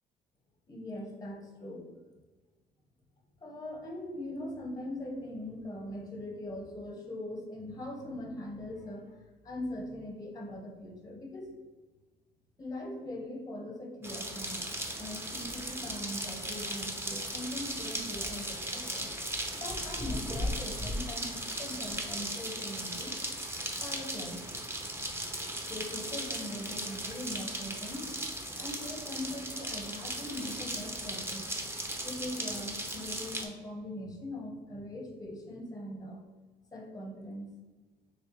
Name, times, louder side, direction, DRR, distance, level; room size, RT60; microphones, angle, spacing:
voice 1, 0.7-1.9 3.4-11.5 12.6-14.6 15.0-19.1 19.6-23.1 23.8-24.4 25.7-28.2 28.6-31.5 32.0-36.2 36.7-37.5, left 1 dB, 20° left, 1 dB, 0.9 m, -41 dB
sound 1, 14.0-33.5, right 1 dB, 15° right, 0.6 m, -37 dB
3.5 x 3.1 x 3.1 m, 1.3 s
cardioid pair, 110°, 17 cm